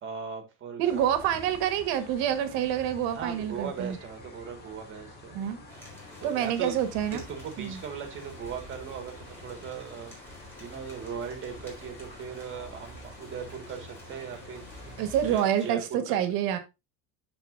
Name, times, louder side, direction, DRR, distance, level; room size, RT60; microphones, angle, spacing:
voice 1, 0.0-1.1 3.1-5.4 6.2-6.7 7.1-10.1 10.6-16.0, right 6 dB, 30° right, 1.9 m, -39 dB
sound 1, 0.8-15.4, left 2 dB, 25° left, 2.0 m, -47 dB
voice 2, 0.8-4.0 5.3-5.6 6.2-7.2 7.6-7.8 15.0-16.6, right 10 dB, 65° right, 1.5 m, -27 dB
sound 2, 5.7-15.7, equal, 5° left, 3.7 m, -51 dB
12.5 x 4.5 x 2.6 m
cardioid pair, 165°, 39 cm